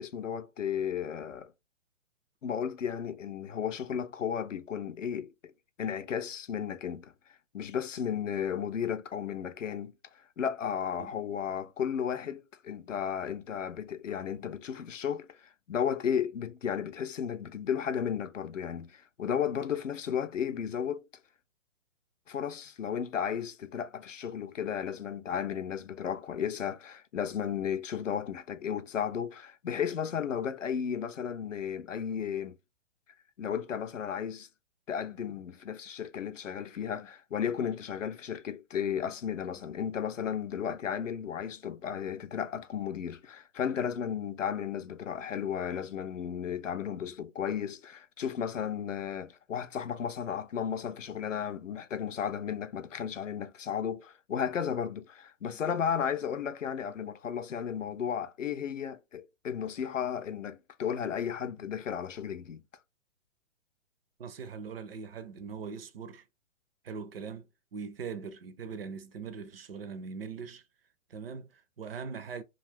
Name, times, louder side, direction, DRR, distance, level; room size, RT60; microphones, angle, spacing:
voice 1, 0.0-1.5 2.4-5.5 5.8-7.1 7.5-21.0 22.3-32.6 33.4-34.5 34.9-62.6, left 8 dB, 80° left, 0.5 m, -34 dB
voice 2, 64.2-66.2 66.8-70.6 71.1-72.4, right 6 dB, 50° right, 0.5 m, -41 dB
2.4 x 2.3 x 3.3 m
figure-of-eight pair, 125°, 38 cm